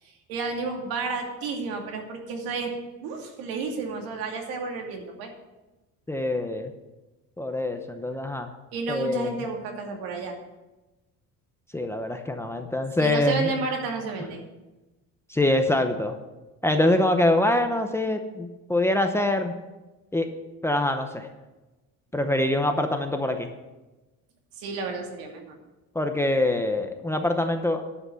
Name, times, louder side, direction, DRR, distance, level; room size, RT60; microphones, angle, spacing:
voice 1, 0.0-2.7 3.0-5.3 8.7-10.4 13.0-14.4 24.6-25.6, right 4 dB, 80° right, 2 dB, 2.6 m, -31 dB
voice 2, 6.1-6.7 7.4-8.5 8.9-9.3 11.7-13.5 15.3-16.2 16.6-19.5 20.1-20.3 20.6-21.3 22.1-23.5 25.9-27.8, left 1 dB, 5° left, 5 dB, 0.7 m, -24 dB
11.5 x 5.9 x 8.2 m, 1.1 s
cardioid pair, 145°, 35 cm